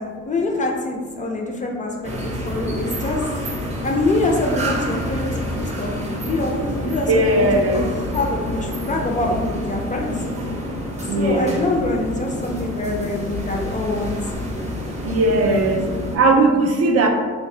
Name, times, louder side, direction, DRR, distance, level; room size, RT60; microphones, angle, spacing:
voice 1, 0.0-3.2 3.8-10.1 11.1-14.1, left 2 dB, 25° left, 0 dB, 0.4 m, -25 dB
sound 1, 2.0-16.2, equal, 25° right, 0.7 m, -28 dB
voice 2, 7.1-7.9 11.1-11.6 15.0-15.8 16.1-17.1, right 2 dB, 55° right, 3 dB, 0.5 m, -18 dB
2.6 x 2.0 x 3.2 m, 1.5 s
cardioid pair, 90°, 30 cm